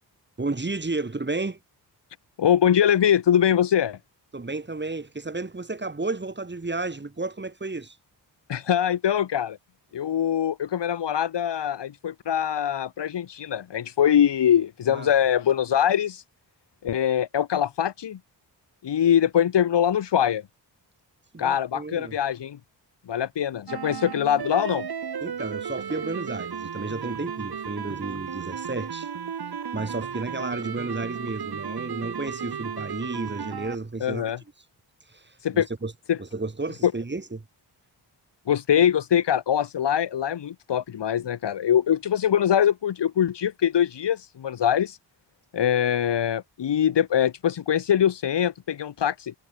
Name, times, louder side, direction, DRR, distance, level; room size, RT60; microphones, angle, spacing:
voice 1, 0.4-1.6 4.3-8.0 14.9-15.1 21.3-22.2 25.2-29.1 29.7-34.3 35.1-35.9 36.2-37.4, right 3 dB, 25° right, 5.0 m, -32 dB
voice 2, 2.4-4.0 8.5-9.6 9.9-16.2 16.8-18.2 18.8-20.4 21.4-22.6 23.1-24.9 34.0-34.4 35.4-35.7 36.1-36.2 36.8-36.9 38.5-45.0 45.5-49.3, left 9 dB, 75° left, 3.2 m, -23 dB
sound 1, 23.7-33.8, right 7 dB, 60° right, 5.4 m, -34 dB
cardioid pair, 75°, 42 cm